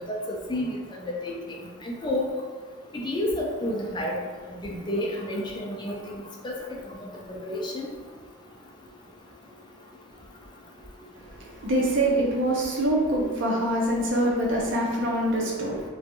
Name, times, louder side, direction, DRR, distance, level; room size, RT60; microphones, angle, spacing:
voice 1, 0.5-1.6 1.8-2.3 2.9-4.2 4.6-6.2 6.4-6.5 7.3-7.9, left 1 dB, 25° left, -1 dB, 0.4 m, -30 dB
voice 2, 11.6-15.8, right 1 dB, 85° right, -3 dB, 0.7 m, -24 dB
2.5 x 2.3 x 2.6 m, 1.4 s
head